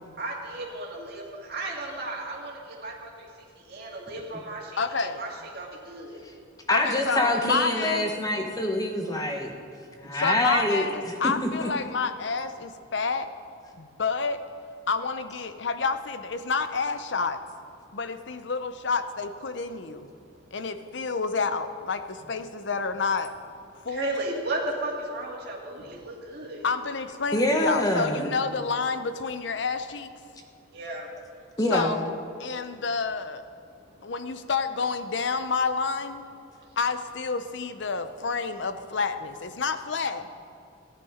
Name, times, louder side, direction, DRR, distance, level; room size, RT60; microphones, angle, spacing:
voice 1, 0.2-3.3 3.7-6.2 23.9-26.7 30.7-31.1, right 2 dB, 50° right, -3 dB, 2.0 m, -34 dB
voice 2, 4.8-5.2 6.7-8.2 10.1-13.3 13.8-14.4 14.9-17.4 17.9-20.1 20.5-23.3 23.8-24.2 26.6-30.1 31.7-32.1 32.4-33.4 34.0-36.2 36.8-40.2, left 4 dB, 60° left, 10 dB, 0.7 m, -29 dB
voice 3, 6.7-9.5 10.0-11.7 27.3-28.4 31.6-31.9, left 1 dB, 20° left, 3 dB, 1.1 m, -25 dB
14.5 x 10.0 x 5.0 m, 2.4 s
head